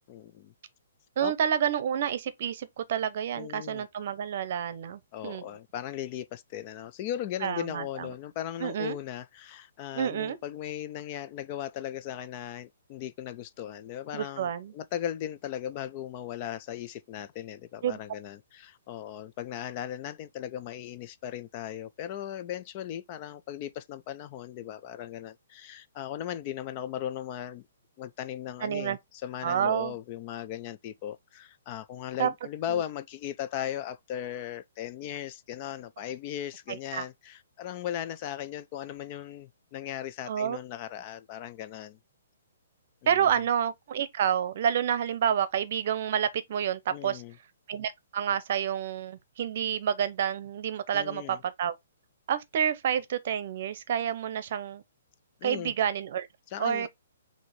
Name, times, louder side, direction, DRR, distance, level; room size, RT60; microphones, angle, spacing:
voice 1, 0.1-0.5 1.2-1.3 3.4-3.9 5.1-27.6 28.0-29.0 29.2-42.0 46.9-47.3 50.9-51.4 55.4-55.7 56.5-56.9, left 11 dB, 30° left, 0.4 m, -37 dB
voice 2, 1.2-5.4 7.4-8.1 8.6-9.0 9.9-10.4 14.1-14.7 17.8-18.0 28.6-29.0 29.4-30.0 32.2-32.3 32.7-32.8 36.7-37.0 40.3-40.6 43.1-47.2 47.7-51.8 52.3-54.8 55.4-56.3 56.6-56.9, right 9 dB, 50° right, 0.7 m, -29 dB
6.2 x 2.8 x 3.1 m
hypercardioid pair, 160°, 0 cm